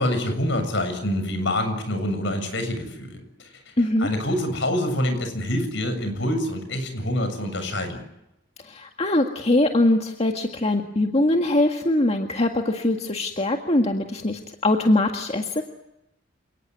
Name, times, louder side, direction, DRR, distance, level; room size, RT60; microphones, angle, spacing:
voice 1, 0.0-3.2 4.0-8.0, left 1 dB, 70° left, 8 dB, 7.3 m, -26 dB
voice 2, 3.8-4.1 8.7-15.6, left 1 dB, 35° left, 3 dB, 1.9 m, -22 dB
29.0 x 19.0 x 9.6 m, 0.88 s
head